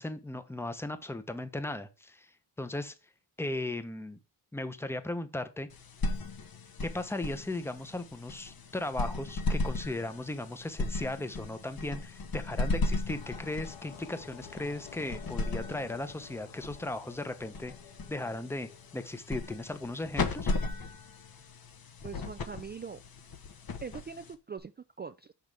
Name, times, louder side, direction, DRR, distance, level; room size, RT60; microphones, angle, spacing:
voice 1, 0.0-2.3 2.6-2.9 3.4-4.2 4.5-5.7 6.8-17.7 18.1-20.5, left 2 dB, 5° left, 1.0 m, -37 dB
sound 1, 5.7-24.6, left 2 dB, 45° left, 1.3 m, -36 dB
sound 2, 13.1-19.3, left 7 dB, 75° left, 2.1 m, -51 dB
voice 2, 22.0-23.0 23.8-25.3, right 6 dB, 20° right, 0.4 m, -42 dB
6.0 x 6.0 x 3.5 m
cardioid pair, 75°, 48 cm